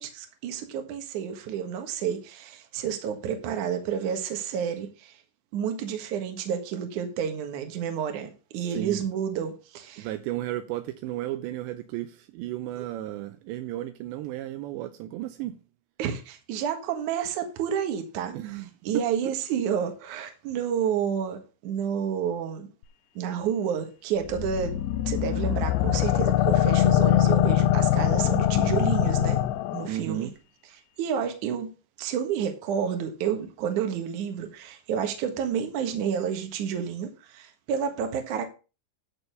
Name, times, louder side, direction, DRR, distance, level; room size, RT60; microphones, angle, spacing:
voice 1, 0.0-5.2 5.5-10.1 16.0-22.7 23.2-29.4 29.7-30.3 31.0-31.7 32.0-38.5, right 8 dB, 60° right, 2.2 m, -30 dB
voice 2, 8.7-9.1 10.0-15.5 18.3-18.7 29.9-30.3, right 14 dB, 80° right, 2.7 m, -34 dB
sound 1, 24.3-29.9, left 13 dB, 80° left, 2.6 m, -23 dB
11.5 x 4.2 x 6.7 m
omnidirectional pair, 5.3 m